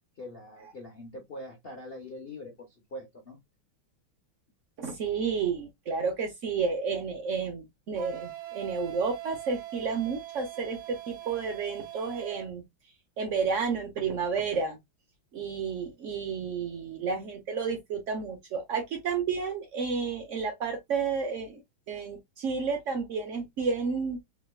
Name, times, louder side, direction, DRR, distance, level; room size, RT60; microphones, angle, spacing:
voice 1, 0.2-3.4, left 1 dB, 55° left, 0.6 m, -43 dB
voice 2, 4.8-12.6 13.2-14.8 15.3-21.6 21.9-24.2, right 5 dB, 85° right, 0.6 m, -31 dB
Wind instrument woodwind instrument, 8.0-12.5, right 14 dB, 60° right, 1.3 m, -42 dB
3.5 x 3.0 x 2.3 m
omnidirectional pair, 2.2 m